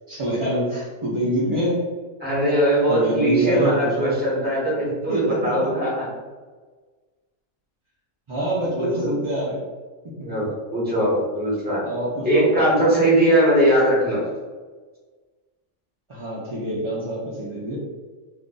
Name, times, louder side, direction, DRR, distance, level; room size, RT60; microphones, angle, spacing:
voice 1, 0.1-1.9 2.9-4.1 5.1-5.5 8.3-9.6 10.0-10.1 11.7-12.5 16.1-17.8, right 1 dB, 45° right, -7 dB, 0.4 m, -25 dB
voice 2, 2.2-6.1 8.7-9.1 10.2-11.8 12.2-14.2, right 1 dB, 10° right, -7 dB, 1.0 m, -20 dB
2.5 x 2.5 x 3.7 m, 1.4 s
omnidirectional pair, 1.4 m